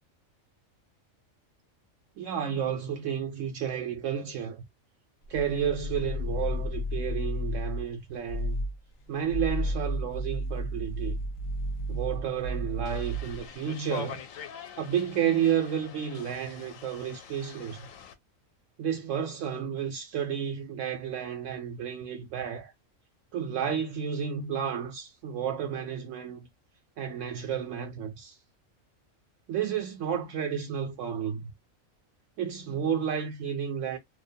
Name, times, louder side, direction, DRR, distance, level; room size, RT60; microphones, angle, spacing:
voice 1, 2.2-4.6 5.3-8.6 9.1-11.2 11.9-14.2 14.8-17.8 18.8-22.7 23.3-26.5 27.0-28.3 29.5-31.5 32.4-34.0, right 8 dB, 75° right, 1.0 m, -31 dB
sound 1, 5.2-7.9 8.3-8.8 9.2-13.5, equal, 50° left, 0.6 m, -32 dB
sound 2, 12.9-18.1, left 8 dB, 80° left, 1.0 m, -44 dB
2.5 x 2.0 x 2.6 m
omnidirectional pair, 1.4 m